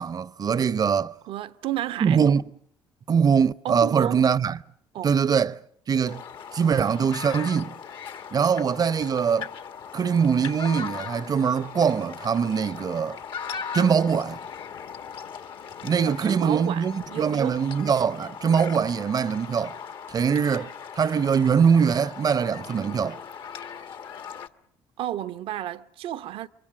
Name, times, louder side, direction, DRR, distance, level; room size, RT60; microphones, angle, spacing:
voice 1, 0.0-1.2 2.0-2.4 3.1-4.6 5.0-5.6 5.9-6.2 6.5-7.7 8.3-9.5 9.9-13.2 13.7-14.4 15.8-19.8 20.1-23.2, right 6 dB, 40° right, 0.9 m, -22 dB
voice 2, 1.2-2.2 3.6-4.2 4.9-5.2 16.0-17.7 25.0-26.5, right 12 dB, 65° right, 1.0 m, -32 dB
sound 1, 6.1-24.5, left 7 dB, 55° left, 1.5 m, -39 dB
28.0 x 24.0 x 6.2 m
hypercardioid pair, 60°, 10 cm